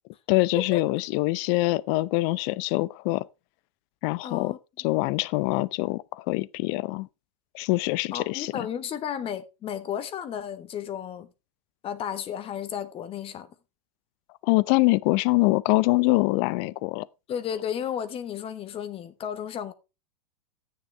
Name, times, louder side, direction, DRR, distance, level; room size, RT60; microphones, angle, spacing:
voice 1, 0.3-3.3 4.0-4.5 4.8-7.1 7.5-8.7 14.4-17.1, left 22 dB, 50° left, 0.6 m, -24 dB
voice 2, 4.2-4.6 8.1-11.3 11.8-13.5 17.3-19.7, left 9 dB, 30° left, 1.2 m, -33 dB
11.0 x 9.1 x 3.3 m
hypercardioid pair, 100°, 18 cm